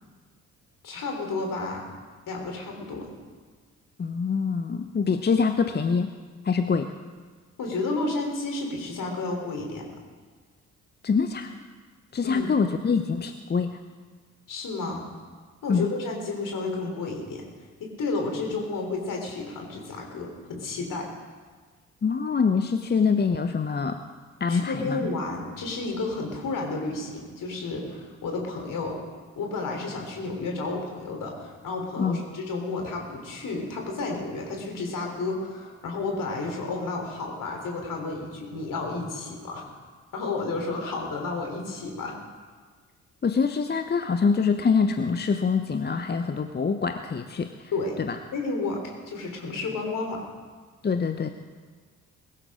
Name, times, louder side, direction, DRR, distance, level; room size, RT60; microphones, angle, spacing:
voice 1, 0.8-1.8 2.3-3.1 7.6-9.8 12.2-12.5 14.5-15.1 15.6-17.4 17.8-21.1 24.5-29.0 29.4-39.6 40.1-42.2 47.7-48.0 48.3-50.2, left 3 dB, 55° left, 1 dB, 3.9 m, -31 dB
voice 2, 4.0-6.1 6.4-6.9 11.0-11.5 12.1-13.8 15.7-15.9 22.0-24.0 24.4-25.1 32.0-32.2 43.2-47.5 48.0-48.2 50.8-51.3, left 5 dB, 25° left, 8 dB, 0.9 m, -25 dB
21.5 x 12.0 x 3.8 m, 1.5 s
figure-of-eight pair, 40°, 39 cm